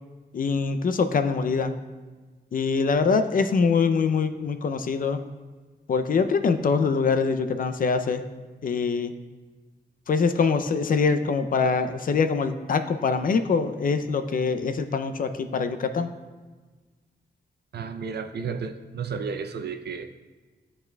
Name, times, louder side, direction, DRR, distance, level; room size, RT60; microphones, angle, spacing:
voice 1, 0.3-1.7 2.5-5.2 5.9-8.2 8.6-9.1 10.1-16.1, left 5 dB, 55° left, 8 dB, 0.4 m, -24 dB
voice 2, 17.7-20.1, right 5 dB, 75° right, 7 dB, 0.5 m, -32 dB
12.0 x 4.2 x 2.2 m, 1.3 s
wide cardioid pair, 120°, 17 cm